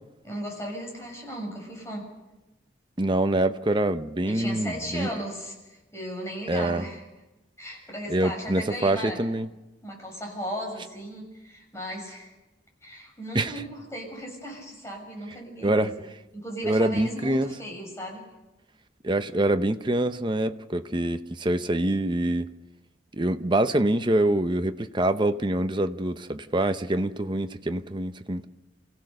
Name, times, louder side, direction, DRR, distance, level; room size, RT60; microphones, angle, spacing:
voice 1, 0.2-2.1 4.2-7.0 7.6-9.2 9.8-12.3 12.8-15.9 16.3-18.2, equal, 15° left, 6.6 m, -36 dB
voice 2, 3.0-5.1 6.5-6.8 8.1-9.5 13.3-13.5 15.6-15.9 16.6-17.5 19.0-22.5 23.1-28.5, right 1 dB, 25° right, 0.8 m, -25 dB
29.0 x 16.0 x 6.6 m
head